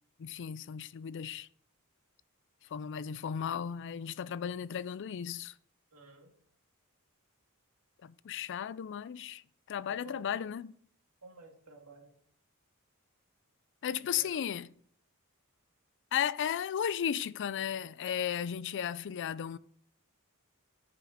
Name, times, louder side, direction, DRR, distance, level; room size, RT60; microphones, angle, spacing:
voice 1, 0.2-1.5 2.7-5.5 8.0-9.4 9.7-10.7 13.8-14.7 16.1-19.6, left 8 dB, 55° left, 0.4 m, -35 dB
voice 2, 5.9-6.3 9.9-10.5 11.2-12.1 14.0-14.4, right 2 dB, 85° right, 2.1 m, -53 dB
10.0 x 5.9 x 4.9 m
head